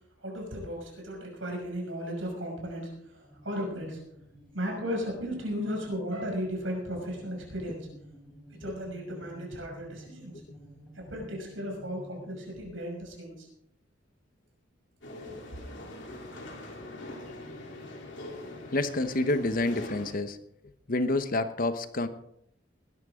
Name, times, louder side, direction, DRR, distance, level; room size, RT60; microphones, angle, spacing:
voice 1, 0.2-4.0 4.5-7.9 8.6-10.4 10.9-13.5, equal, 85° right, 0 dB, 6.0 m, -35 dB
sound 1, 3.2-12.7, equal, 5° left, 3.9 m, -51 dB
sound 2, 15.0-20.1, left 2 dB, 65° left, 3.3 m, -42 dB
voice 2, 18.7-20.4 20.9-22.1, left 2 dB, 50° left, 11 dB, 1.0 m, -28 dB
20.0 x 12.0 x 3.7 m, 0.74 s
head